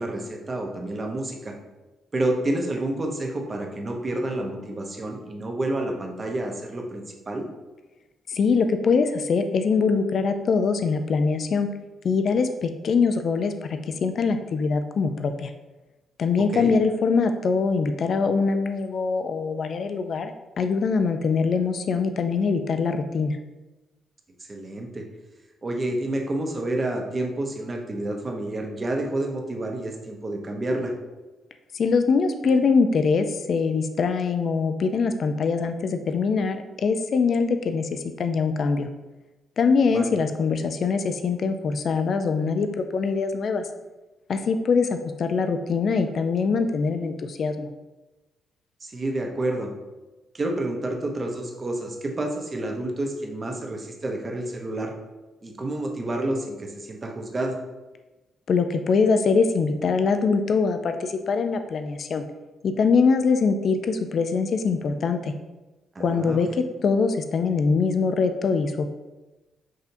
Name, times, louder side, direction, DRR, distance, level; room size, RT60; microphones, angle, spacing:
voice 1, 0.0-1.5 2.1-7.5 16.5-16.7 24.4-25.0 25.6-30.9 39.9-40.1 48.8-49.7 50.3-54.9 55.4-57.6 65.9-66.4, right 1 dB, 35° right, 2 dB, 0.7 m, -29 dB
voice 2, 8.3-11.7 12.0-15.5 16.2-23.4 31.7-38.9 39.6-43.7 44.3-47.7 58.5-62.2 62.6-65.3 66.0-68.9, left 5 dB, 60° left, 8 dB, 0.3 m, -23 dB
6.2 x 2.7 x 2.6 m, 1.1 s
cardioid pair, 80°, 0 cm